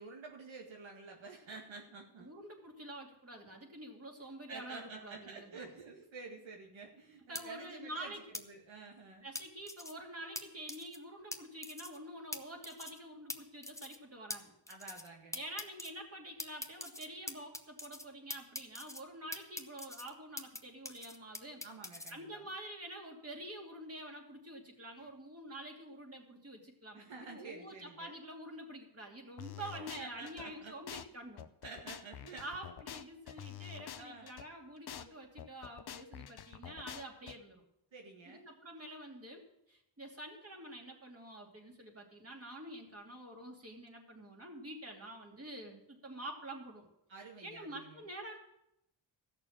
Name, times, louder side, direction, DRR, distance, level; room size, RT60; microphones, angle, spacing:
voice 1, 0.0-2.3 4.5-9.3 14.7-15.4 21.6-22.5 25.0-25.1 26.9-28.1 29.6-30.8 31.6-32.4 34.0-34.4 37.9-38.5 47.1-48.0, right 4 dB, 75° right, 1 dB, 1.9 m, -50 dB
voice 2, 2.2-5.7 7.3-8.2 9.2-14.5 15.3-21.6 22.1-31.4 32.4-37.6 38.3-46.9 47.4-48.4, right 1 dB, 30° right, 1 dB, 2.9 m, -47 dB
sound 1, 7.4-7.5 8.3-8.4 9.4-9.9 10.4-10.5 10.7-11.0 11.3-11.4 11.6-12.0 12.3-12.4 12.6-13.0 13.3-13.4 13.6-14.0 14.3-14.4 14.7-15.1 15.3-15.9 16.4-18.1 18.3-19.0 19.3-20.6 20.9-22.1, left 2 dB, 5° left, 0.9 m, -43 dB
sound 2, 29.4-30.5 30.9-31.1 31.4-34.5 34.9-35.1 35.4-37.4, left 10 dB, 55° left, 0.8 m, -47 dB
14.5 x 6.7 x 7.4 m, 0.83 s
cardioid pair, 85°, 47 cm